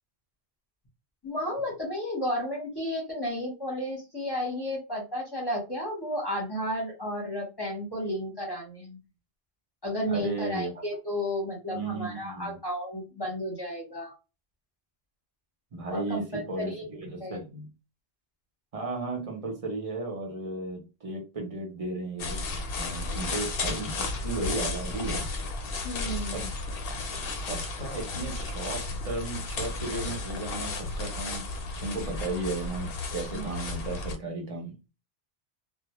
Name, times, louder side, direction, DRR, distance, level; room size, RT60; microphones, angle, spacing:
voice 1, 1.2-9.0 9.8-14.1 15.9-16.8 17.2-17.4 25.8-26.4 33.3-33.5, left 1 dB, 25° left, 0.8 m, -32 dB
voice 2, 10.1-10.7 11.7-12.6 15.7-17.7 18.7-22.5 22.7-25.3 26.3-26.5 27.5-31.5 31.8-34.8, right 2 dB, 40° right, 0.7 m, -35 dB
sound 1, 22.2-34.2, left 3 dB, 70° left, 0.7 m, -33 dB
2.1 x 2.0 x 2.9 m
omnidirectional pair, 1.1 m